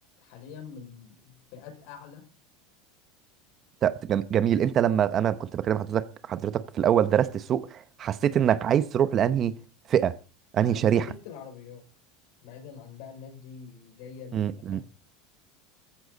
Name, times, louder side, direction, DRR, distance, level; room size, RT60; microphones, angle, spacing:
voice 1, 0.2-2.3 10.6-11.8 12.4-14.8, left 7 dB, 60° left, 5.6 m, -45 dB
voice 2, 3.8-9.6 9.9-10.2 10.5-11.1 14.3-14.8, right 9 dB, 30° right, 0.9 m, -24 dB
16.5 x 15.0 x 4.0 m
supercardioid pair, 155°, 0 cm